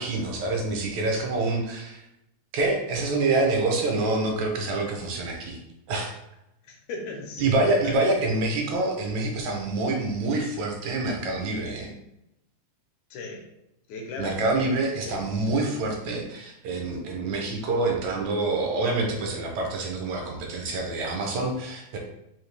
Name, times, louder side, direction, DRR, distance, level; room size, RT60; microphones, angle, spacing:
voice 1, 0.0-2.0 2.5-5.6 5.9-6.1 7.4-11.9 14.2-22.0, right 2 dB, 75° right, 1 dB, 1.9 m, -26 dB
voice 2, 6.7-8.3 13.1-13.5 13.9-14.7 15.1-15.3, left 3 dB, 80° left, 2 dB, 2.1 m, -37 dB
4.9 x 2.8 x 3.2 m, 0.85 s
omnidirectional pair, 3.4 m